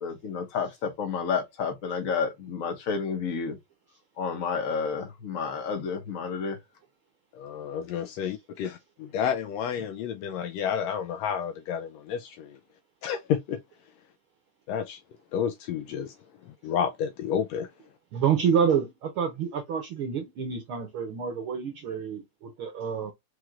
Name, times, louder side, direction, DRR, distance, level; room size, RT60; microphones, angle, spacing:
voice 1, 0.0-3.6 4.2-6.6, left 5 dB, 60° left, 0.8 m, -30 dB
voice 2, 7.3-12.6 13.0-13.6 14.7-15.0 15.3-16.1 16.4-17.7, left 8 dB, 80° left, 1.5 m, -30 dB
voice 3, 18.1-23.1, right 7 dB, 70° right, 1.2 m, -28 dB
4.7 x 4.5 x 2.4 m
omnidirectional pair, 3.4 m